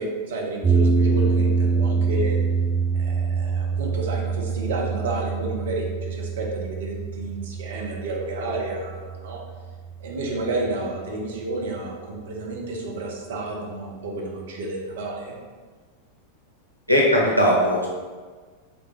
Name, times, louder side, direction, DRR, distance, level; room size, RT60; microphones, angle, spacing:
voice 1, 0.0-2.4 2.9-9.4 10.0-15.3, right 2 dB, 60° right, -1 dB, 0.6 m, -31 dB
sound 1, 0.6-10.9, right 5 dB, 20° right, 0.5 m, -25 dB
voice 2, 16.9-17.9, equal, 90° left, -3 dB, 0.7 m, -18 dB
3.2 x 2.6 x 3.1 m, 1.5 s
figure-of-eight pair, 90°, 0 cm